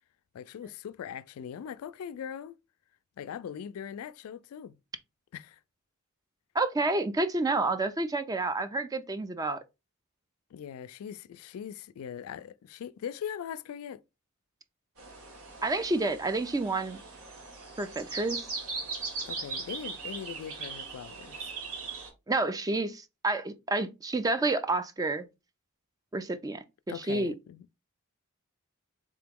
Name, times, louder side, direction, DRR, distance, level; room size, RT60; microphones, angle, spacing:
voice 1, 0.3-2.6 3.2-4.8 5.3-5.6 10.5-14.0 19.3-21.5 26.9-27.7, left 8 dB, 70° left, 0.3 m, -41 dB
voice 2, 6.5-9.6 15.6-17.0 17.8-18.5 22.3-25.2 26.1-27.3, right 2 dB, 15° right, 0.3 m, -29 dB
sound 1, 15.0-22.1, right 4 dB, 75° right, 1.5 m, -39 dB
3.7 x 2.9 x 3.5 m
head